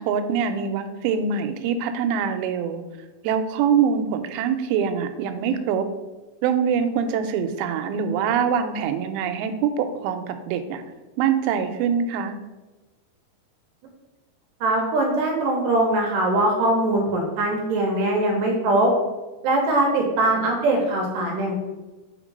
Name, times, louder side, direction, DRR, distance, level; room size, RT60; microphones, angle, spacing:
voice 1, 0.0-2.8 3.2-5.9 6.4-10.8 11.2-12.3, right 7 dB, 90° right, 8 dB, 2.5 m, -24 dB
voice 2, 14.6-18.9 19.4-21.6, right 2 dB, 75° right, 0 dB, 2.2 m, -21 dB
5.3 x 3.6 x 5.2 m, 1.1 s
omnidirectional pair, 4.3 m